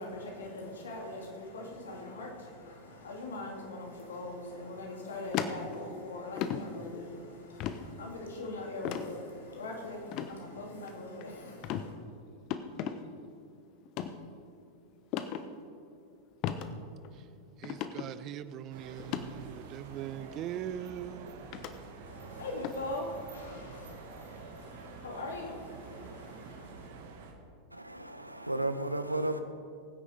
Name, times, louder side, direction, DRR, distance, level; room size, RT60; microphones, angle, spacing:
voice 1, 0.0-11.9 22.1-26.9, left 2 dB, 65° left, 2.6 m, -42 dB
sound 1, 5.3-6.0 6.4-6.6 7.6-7.8 8.8-9.1 10.1-10.3 10.8-11.2 11.6-11.9 12.5-13.0 13.9-14.1 15.1-15.4 16.4-16.7 17.0-17.1 17.6-18.1 19.0-19.2 20.3-20.4 21.5-21.7 22.6-22.8, left 10 dB, 40° left, 0.8 m, -34 dB
voice 2, 17.6-21.4, right 11 dB, 35° right, 0.5 m, -41 dB
sound 2, 18.7-27.3, right 4 dB, 55° right, 1.6 m, -48 dB
voice 3, 27.7-29.4, right 1 dB, 85° right, 0.8 m, -33 dB
22.0 x 9.7 x 3.5 m
figure-of-eight pair, 90°, 0 cm